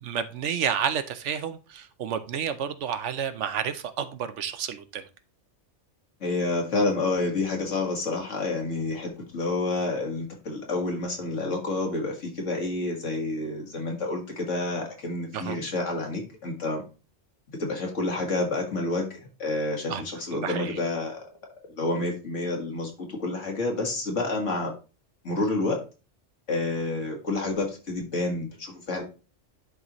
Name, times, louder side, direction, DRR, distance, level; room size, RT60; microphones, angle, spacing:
voice 1, 0.0-5.0 15.3-15.6 19.9-20.0 20.3-20.8, right 8 dB, 75° right, 1.0 m, -30 dB
voice 2, 6.2-16.8 17.5-21.2 21.8-24.7 25.2-25.8 26.5-29.0, left 2 dB, 75° left, 2.1 m, -29 dB
11.0 x 4.0 x 3.0 m
omnidirectional pair, 1.3 m